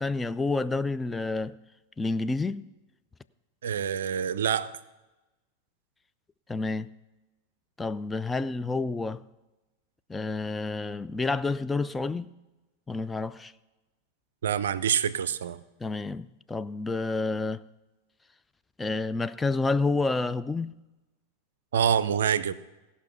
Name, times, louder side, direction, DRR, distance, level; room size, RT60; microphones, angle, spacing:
voice 1, 0.0-1.6 2.0-2.6 6.5-6.9 7.8-9.2 10.1-12.3 12.9-13.5 15.8-17.6 18.8-20.7, left 3 dB, 10° left, 0.3 m, -29 dB
voice 2, 3.6-4.7 14.4-15.6 21.7-22.5, right 8 dB, 60° right, 0.4 m, -26 dB
16.5 x 5.6 x 6.0 m
figure-of-eight pair, 90°, 0 cm